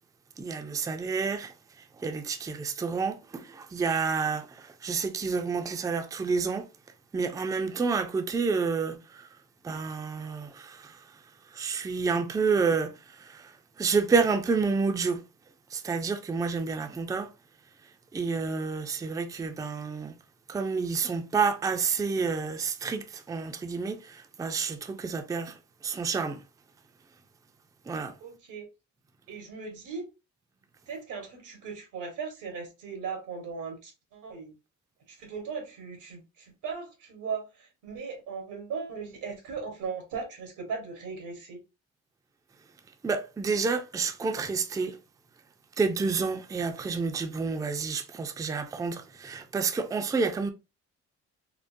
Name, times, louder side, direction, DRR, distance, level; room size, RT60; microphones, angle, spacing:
voice 1, 0.4-6.7 7.1-9.3 9.6-11.2 11.5-15.2 15.7-17.3 18.1-20.2 20.5-26.4 27.9-28.1 43.0-45.0 45.8-50.5, right 5 dB, 10° right, 0.3 m, -29 dB
voice 2, 28.2-28.7 29.3-30.1 30.9-34.5 35.1-41.6, right 5 dB, 90° right, 1.3 m, -38 dB
3.7 x 2.0 x 2.5 m
cardioid pair, 90°, 30 cm